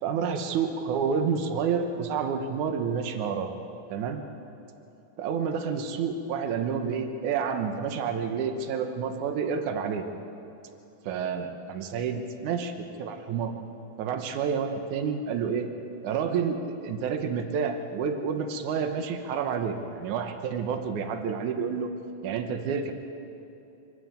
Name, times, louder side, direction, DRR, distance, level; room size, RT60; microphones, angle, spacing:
voice 1, 0.0-3.5 3.9-4.2 5.2-10.1 11.1-13.6 14.0-15.7 16.0-21.9 22.2-22.9, right 6 dB, 70° right, 6 dB, 1.9 m, -29 dB
25.5 x 13.0 x 8.9 m, 2.9 s
omnidirectional pair, 4.9 m